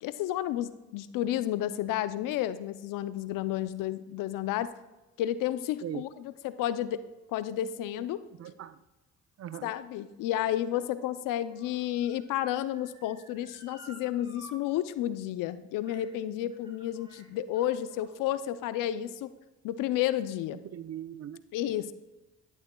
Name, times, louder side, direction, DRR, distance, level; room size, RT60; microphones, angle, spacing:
voice 1, 0.0-4.7 5.2-7.0 7.3-8.2 9.6-19.3 19.6-20.6 21.5-21.9, left 12 dB, 80° left, 14 dB, 0.6 m, -31 dB
voice 2, 8.4-8.8 9.4-9.7 20.5-21.4, right 10 dB, 50° right, 14 dB, 0.6 m, -40 dB
Motor vehicle (road) / Siren, 9.3-14.5 14.9-15.0 15.8-16.2 16.5-18.2 18.9-19.0, right 2 dB, 15° right, 3.3 m, -56 dB
11.5 x 10.5 x 2.3 m, 1.1 s
supercardioid pair, 55°, 32 cm